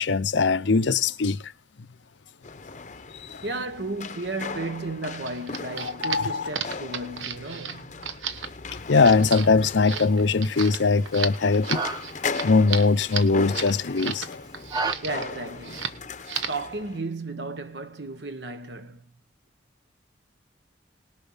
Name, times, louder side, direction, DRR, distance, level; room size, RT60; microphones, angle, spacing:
voice 1, 0.0-1.4 5.8-6.5 8.9-11.8 12.4-14.4, left 4 dB, 80° left, 0.7 m, -21 dB
sound 1, 2.4-17.0, left 4 dB, 40° left, 0.8 m, -38 dB
voice 2, 3.4-8.1 15.0-16.0 16.5-19.0, right 2 dB, 65° right, 1.3 m, -34 dB
sound 2, 5.1-14.3 14.5-15.3 15.6-16.0 16.3-16.7, right 7 dB, 85° right, 1.0 m, -33 dB
sound 3, 8.8-14.9, right 3 dB, 20° right, 1.0 m, -36 dB
19.0 x 6.9 x 5.7 m
head